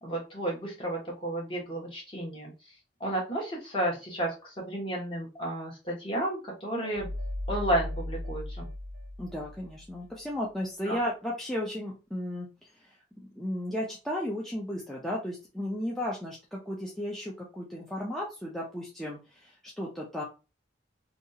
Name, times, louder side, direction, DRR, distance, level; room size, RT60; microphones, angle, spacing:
voice 1, 0.0-2.5 3.0-7.1 7.5-8.7 10.8-11.0, right 1 dB, 30° left, -3 dB, 1.1 m, -32 dB
sound 1, 6.8-10.0, left 1 dB, 55° right, 0.6 m, -37 dB
voice 2, 9.2-20.2, left 1 dB, ahead, -4 dB, 0.4 m, -35 dB
2.7 x 2.3 x 2.7 m, 0.30 s
head